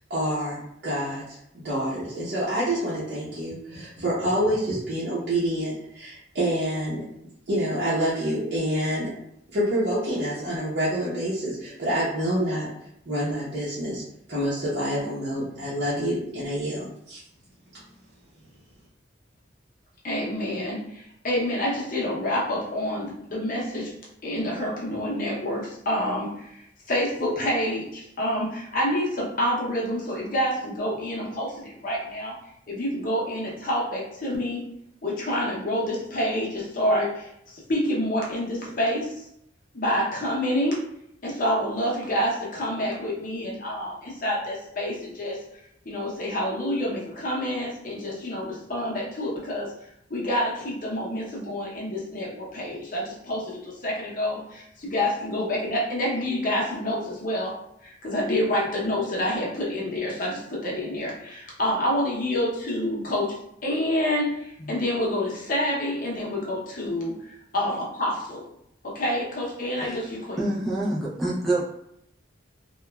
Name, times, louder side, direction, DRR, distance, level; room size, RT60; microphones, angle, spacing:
voice 1, 0.1-1.4 1.6-7.0 7.5-9.1 9.5-12.7 13.1-14.0 14.3-17.2 17.7-17.8, equal, 55° right, -10 dB, 0.7 m, -27 dB
voice 2, 20.0-23.9 24.2-32.3 32.7-34.6 35.0-39.3 39.7-40.8 41.2-45.4 45.9-49.7 50.1-57.5 57.8-68.4 68.8-70.4, left 1 dB, 45° left, -4 dB, 0.7 m, -28 dB
voice 3, 69.8-70.1 70.4-71.6, right 1 dB, ahead, -6 dB, 0.4 m, -27 dB
2.9 x 2.2 x 2.2 m, 0.76 s
head